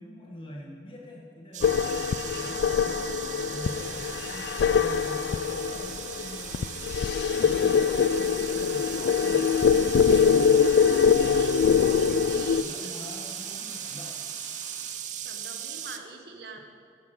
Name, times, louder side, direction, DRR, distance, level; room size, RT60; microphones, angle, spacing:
voice 1, 0.0-1.8 2.2-9.5 12.4-14.2, equal, 30° left, -3 dB, 1.4 m, -44 dB
sound 1, 1.5-16.0, right 9 dB, 45° right, 0.6 m, -38 dB
sound 2, 1.6-12.6, left 6 dB, 70° left, 0.3 m, -23 dB
sound 3, 3.6-14.9, left 1 dB, 15° left, 2.2 m, -48 dB
voice 2, 10.8-11.5 11.9-12.9 15.2-16.6, right 3 dB, 65° right, 3 dB, 1.3 m, -44 dB
11.0 x 7.1 x 8.0 m, 2.2 s
head